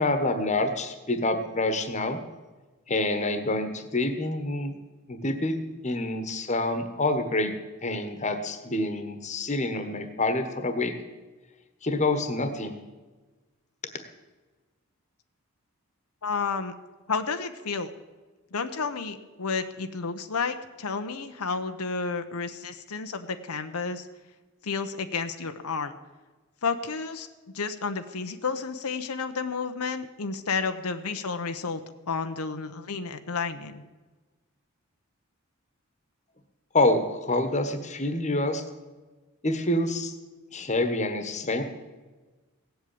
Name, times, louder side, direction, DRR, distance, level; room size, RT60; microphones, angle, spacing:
voice 1, 0.0-2.2 2.9-4.7 5.1-5.6 5.8-7.5 7.8-10.9 11.8-12.8 36.7-38.6 39.4-40.1 40.5-41.6, left 2 dB, 30° left, 8 dB, 1.3 m, -27 dB
voice 2, 16.2-16.7 17.1-17.9 18.5-24.1 24.6-26.0 26.6-27.3 27.5-31.8 32.1-33.8, left 4 dB, 90° left, 8 dB, 0.9 m, -31 dB
16.5 x 8.0 x 8.5 m, 1.3 s
head